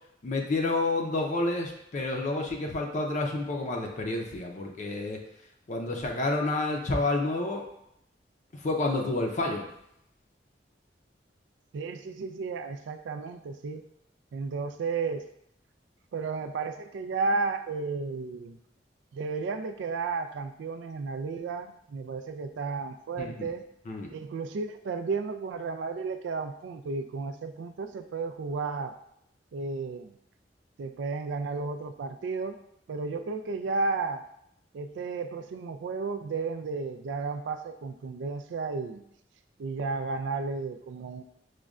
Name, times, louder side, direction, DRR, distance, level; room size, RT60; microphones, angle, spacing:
voice 1, 0.2-5.2 5.7-7.6 8.6-9.7 23.2-23.3 23.9-24.1, left 2 dB, 45° left, 1 dB, 0.5 m, -29 dB
voice 2, 11.7-13.9 14.3-15.2 16.1-18.6 19.1-23.7 24.1-28.9 29.5-30.1 30.8-32.6 32.9-34.2 34.7-39.0 39.6-41.2, right 4 dB, 85° right, 9 dB, 0.3 m, -33 dB
6.1 x 2.2 x 2.4 m, 0.77 s
head